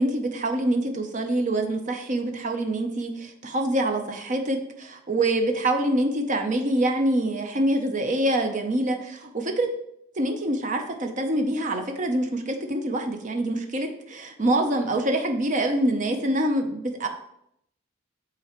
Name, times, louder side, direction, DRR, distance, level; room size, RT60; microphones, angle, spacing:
voice 1, 0.0-9.7 10.1-17.1, right 1 dB, 40° right, 5 dB, 0.6 m, -25 dB
8.7 x 3.8 x 3.0 m, 0.75 s
head